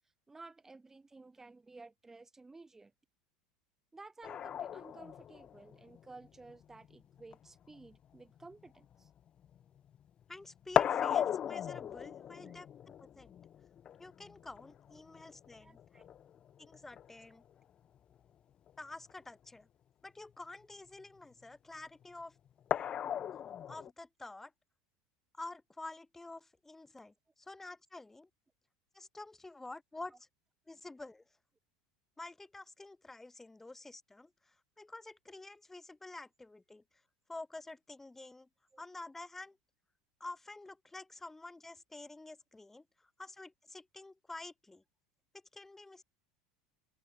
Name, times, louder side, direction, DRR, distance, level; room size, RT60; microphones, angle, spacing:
voice 1, 0.3-2.9 3.9-9.1 12.4-12.5 15.6-16.1 38.7-38.8, right 3 dB, 15° right, 1.5 m, -54 dB
sound 1, 4.2-10.0 10.2-17.3 18.7-18.8 19.1-19.2 22.7-23.9, left 9 dB, 40° left, 0.6 m, -37 dB
voice 2, 10.3-12.7 13.0-13.4 14.0-15.8 16.6-17.4 18.8-19.7 20.0-22.4 23.7-24.5 25.3-28.3 28.9-30.3 30.7-31.2 32.2-36.8 37.3-38.5 38.8-39.6 40.2-44.8 45.3-46.0, left 2 dB, 10° left, 2.6 m, -49 dB
open air
hypercardioid pair, 90°, 3 cm